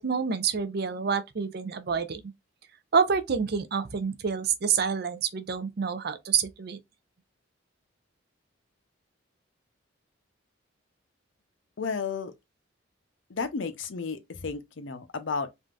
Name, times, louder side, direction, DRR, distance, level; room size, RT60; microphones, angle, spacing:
voice 1, 0.0-2.2 2.9-6.8, right 6 dB, 55° right, 0.5 m, -27 dB
voice 2, 11.8-12.3 13.3-15.5, left 5 dB, 70° left, 0.6 m, -32 dB
3.4 x 2.6 x 2.3 m
head